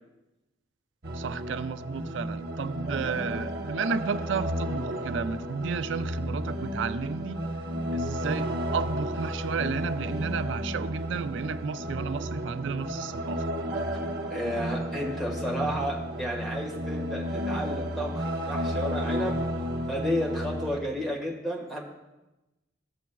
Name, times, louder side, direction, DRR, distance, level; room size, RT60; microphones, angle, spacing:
sound 1, 1.0-20.8, equal, 55° right, 0.8 m, -32 dB
voice 1, 1.1-7.4 7.9-13.6, right 6 dB, 75° right, 13 dB, 0.4 m, -32 dB
voice 2, 14.3-19.4 19.9-21.8, equal, ahead, -2 dB, 1.5 m, -32 dB
14.5 x 7.1 x 2.3 m, 1.0 s
head